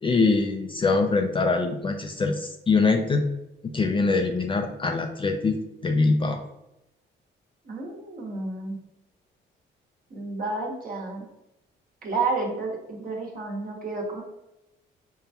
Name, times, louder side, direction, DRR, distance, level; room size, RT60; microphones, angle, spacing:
voice 1, 0.0-3.2 3.6-6.4, left 3 dB, 25° left, 4 dB, 0.4 m, -23 dB
voice 2, 7.6-8.8 10.1-11.3 12.0-14.2, right 3 dB, 45° right, -1 dB, 1.2 m, -31 dB
5.3 x 2.2 x 2.8 m, 0.91 s
cardioid pair, 90°, 20 cm